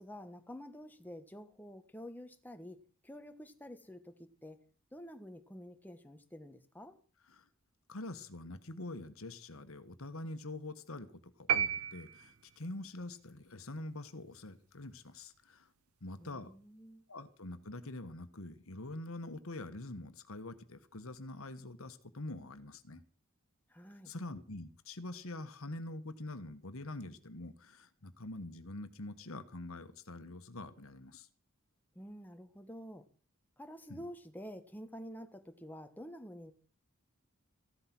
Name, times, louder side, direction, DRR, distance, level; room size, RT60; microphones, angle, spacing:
voice 1, 0.0-4.6 4.9-7.0 16.2-17.0 23.7-24.1 31.9-33.0 33.6-36.5, equal, 10° left, 1.4 m, -49 dB
voice 2, 7.9-15.7 16.0-16.5 17.1-23.0 24.0-31.3 33.9-34.0, left 2 dB, 70° left, 1.5 m, -45 dB
sound 1, 11.5-12.7, right 8 dB, 90° right, 0.8 m, -33 dB
15.5 x 12.0 x 6.1 m
head